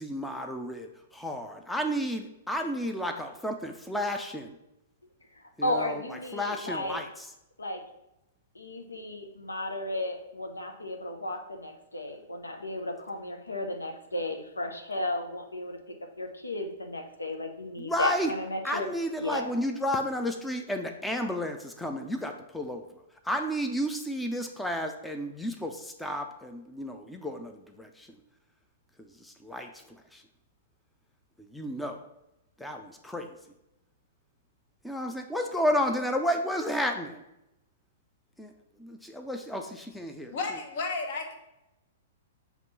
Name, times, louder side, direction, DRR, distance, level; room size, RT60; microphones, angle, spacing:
voice 1, 0.0-4.6 5.6-6.0 6.3-7.3 17.8-18.3 18.6-22.8 23.2-28.2 29.0-30.2 31.5-32.0 32.6-33.3 34.8-37.2 38.4-38.5 38.8-40.4, equal, 5° left, 4 dB, 0.5 m, -32 dB
voice 2, 5.3-7.0 7.6-7.8 8.5-15.8 16.2-18.9 19.2-19.5, left 1 dB, 85° left, 4 dB, 0.7 m, -34 dB
voice 3, 40.3-41.3, left 3 dB, 50° left, 4 dB, 1.1 m, -33 dB
5.9 x 3.0 x 5.5 m, 0.88 s
figure-of-eight pair, 110°, 0 cm